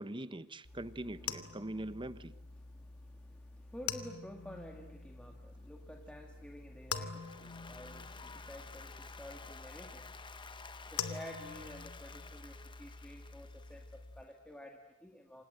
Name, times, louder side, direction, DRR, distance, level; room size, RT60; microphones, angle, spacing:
voice 1, 0.0-2.3, right 1 dB, 20° right, 14 dB, 1.0 m, -42 dB
sound 1, 0.6-14.2, left 6 dB, 80° left, 1.9 m, -46 dB
voice 2, 1.4-1.8 2.6-10.2 10.9-15.4, equal, 5° left, 2 dB, 2.0 m, -51 dB
Applause, 7.0-14.2, left 4 dB, 20° left, 1.2 m, -52 dB
28.5 x 26.0 x 8.0 m, 1.0 s
head